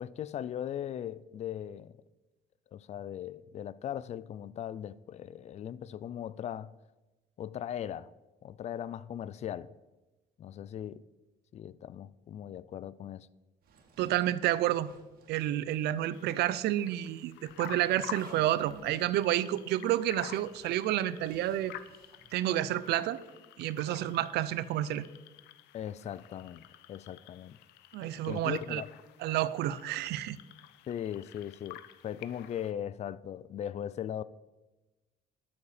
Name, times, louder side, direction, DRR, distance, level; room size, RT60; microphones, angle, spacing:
voice 1, 0.0-1.9 2.7-6.7 7.4-8.1 8.4-9.7 10.4-11.0 11.5-13.3 25.7-26.6 26.9-27.6 28.2-28.9 30.9-34.2, left 10 dB, 40° left, 0.4 m, -39 dB
Zipper (clothing), 13.6-16.2 16.5-16.6 17.4-22.4, right 4 dB, 60° right, 2.4 m, -56 dB
voice 2, 14.0-14.9 15.3-21.7 22.3-23.2 23.6-25.1 27.9-28.8 29.2-30.4, right 13 dB, 80° right, 0.6 m, -30 dB
sound 1, 16.1-32.7, left 13 dB, 85° left, 0.7 m, -50 dB
12.5 x 7.2 x 5.0 m
cardioid pair, 110°, 17 cm